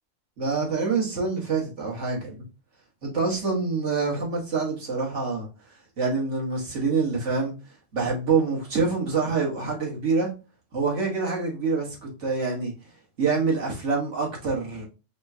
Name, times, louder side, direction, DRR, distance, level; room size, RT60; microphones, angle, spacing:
voice 1, 0.4-2.4 3.0-5.5 6.0-7.5 7.9-10.3 10.7-12.7 13.2-14.9, right 4 dB, 70° right, 1.8 m, -26 dB
5.4 x 2.3 x 2.7 m
omnidirectional pair, 1.3 m